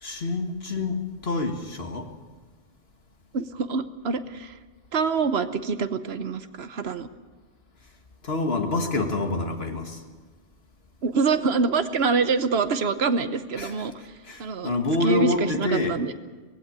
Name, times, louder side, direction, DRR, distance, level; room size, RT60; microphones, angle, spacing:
voice 1, 0.0-2.1 8.2-10.0 13.6-13.7 14.2-16.0, left 2 dB, 70° left, 4 dB, 2.1 m, -27 dB
voice 2, 3.3-4.5 4.9-7.1 11.0-14.1 14.4-14.7 15.0-16.1, right 4 dB, 70° right, 11 dB, 1.2 m, -25 dB
19.5 x 15.5 x 8.9 m, 1.4 s
omnidirectional pair, 1.1 m